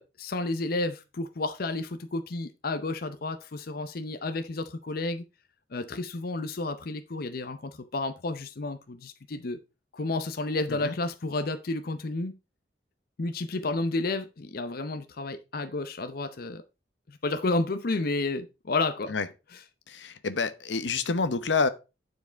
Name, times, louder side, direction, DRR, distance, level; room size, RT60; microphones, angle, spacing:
voice 1, 0.0-5.2 5.7-9.6 9.9-12.4 13.2-16.6 17.1-19.1 19.5-19.6, left 2 dB, 55° left, 0.7 m, -31 dB
voice 2, 19.9-21.7, left 4 dB, 85° left, 0.9 m, -27 dB
9.6 x 4.8 x 4.4 m
head